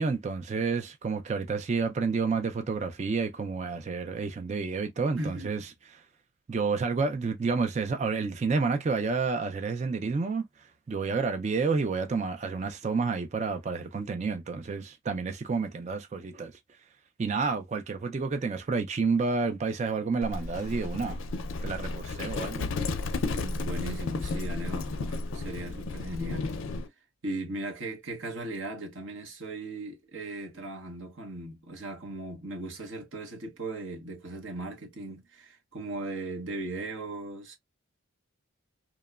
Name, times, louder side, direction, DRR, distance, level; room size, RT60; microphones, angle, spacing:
voice 1, 0.0-5.6 6.5-10.4 10.9-16.5 17.2-21.2 21.6-22.7, right 4 dB, 30° right, 0.3 m, -29 dB
voice 2, 5.1-5.7 23.3-26.5 27.2-37.6, right 2 dB, 60° right, 0.9 m, -38 dB
Livestock farm animals working animals, 20.2-26.9, left 3 dB, 65° left, 0.4 m, -33 dB
2.9 x 2.1 x 2.2 m
head